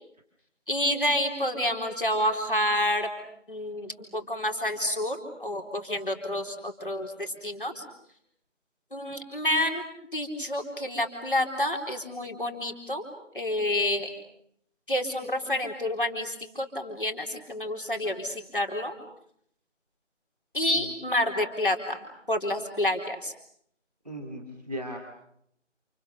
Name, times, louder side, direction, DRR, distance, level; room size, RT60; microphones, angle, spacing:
voice 1, 0.7-3.1 3.5-7.9 8.9-9.8 10.1-13.1 13.3-14.1 14.9-19.0 20.5-23.3, left 1 dB, 45° left, 3 dB, 4.2 m, -29 dB
voice 2, 24.0-25.0, equal, 35° right, 2 dB, 2.6 m, -37 dB
29.0 x 29.0 x 6.8 m, 0.69 s
figure-of-eight pair, 175°, 37 cm